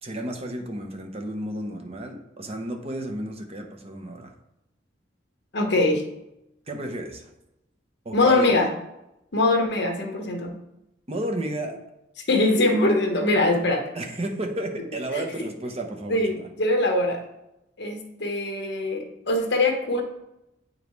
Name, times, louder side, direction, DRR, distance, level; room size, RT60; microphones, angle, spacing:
voice 1, 0.0-4.3 6.7-7.3 8.0-8.6 11.1-11.8 13.9-16.5, right 1 dB, 35° right, 3 dB, 0.9 m, -32 dB
voice 2, 5.5-6.0 8.1-8.7 9.3-10.6 12.3-13.8 15.1-15.2 16.1-17.2 17.8-20.0, left 2 dB, 60° left, 3 dB, 1.2 m, -22 dB
8.4 x 5.2 x 3.2 m, 0.87 s
head